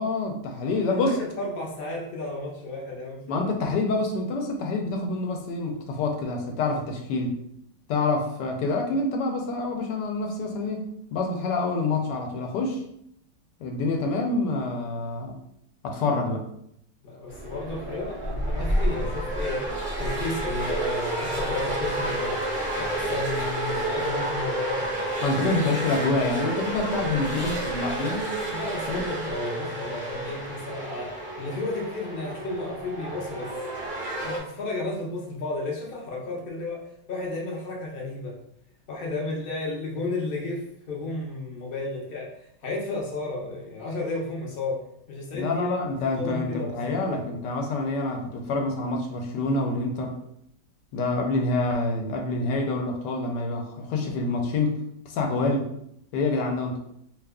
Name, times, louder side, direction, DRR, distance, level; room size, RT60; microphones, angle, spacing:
voice 1, 0.0-1.2 3.3-7.4 7.9-12.8 13.6-15.4 15.8-16.5 25.2-28.3 28.9-29.0 45.3-50.2 50.9-55.7 56.1-56.8, left 3 dB, 85° left, 2 dB, 1.2 m, -27 dB
voice 2, 0.7-3.4 17.0-19.6 20.0-22.4 22.8-24.8 25.2-25.4 28.5-33.5 34.2-38.4 38.9-44.8 45.1-47.3, left 2 dB, 55° left, -1 dB, 0.6 m, -33 dB
sound 1, 17.3-34.4, right 1 dB, 35° right, 0.6 m, -30 dB
2.8 x 2.4 x 3.5 m, 0.73 s
omnidirectional pair, 1.8 m